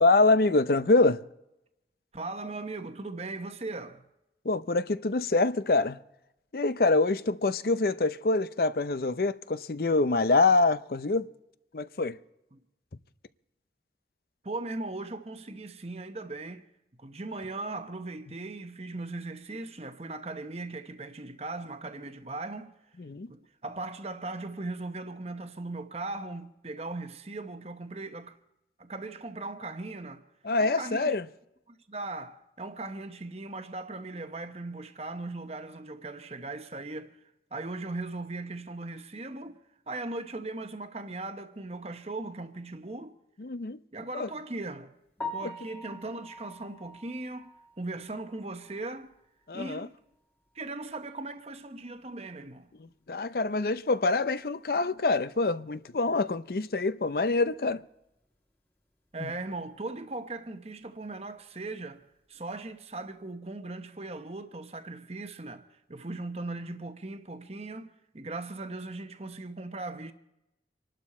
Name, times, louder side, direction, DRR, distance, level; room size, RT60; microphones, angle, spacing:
voice 1, 0.0-1.2 4.4-6.0 6.5-11.3 11.7-12.2 23.0-23.3 30.4-31.2 43.4-43.8 44.1-44.3 45.4-45.5 49.5-49.9 53.1-57.8 59.2-59.3, left 3 dB, 55° left, 0.6 m, -25 dB
voice 2, 2.1-4.0 12.5-12.6 14.4-16.6 17.0-22.7 23.3-28.4 28.8-30.2 30.6-31.1 31.7-37.2 37.5-39.6 39.9-43.2 43.9-44.9 45.3-49.1 49.5-50.0 50.5-52.7 59.1-62.0 62.3-70.1, right 2 dB, 35° right, 1.0 m, -38 dB
Piano, 45.2-49.2 49.5-49.6 50.1-50.2 50.6-50.7 53.8-53.9 62.3-62.6, left 2 dB, 10° left, 1.9 m, -43 dB
27.0 x 12.0 x 4.3 m
head